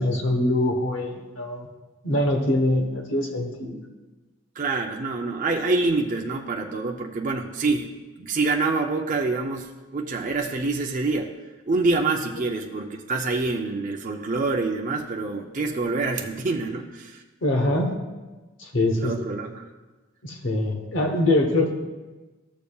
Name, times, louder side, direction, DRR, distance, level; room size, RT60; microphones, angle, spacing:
voice 1, 0.0-1.7 2.0-3.8 17.4-17.9 18.6-19.1 20.2-21.7, left 1 dB, 60° left, 2 dB, 1.0 m, -23 dB
voice 2, 4.6-7.9 8.2-11.3 11.7-17.2 19.0-19.7, right 3 dB, 35° right, 1 dB, 0.5 m, -26 dB
14.0 x 6.9 x 2.3 m, 1.2 s
head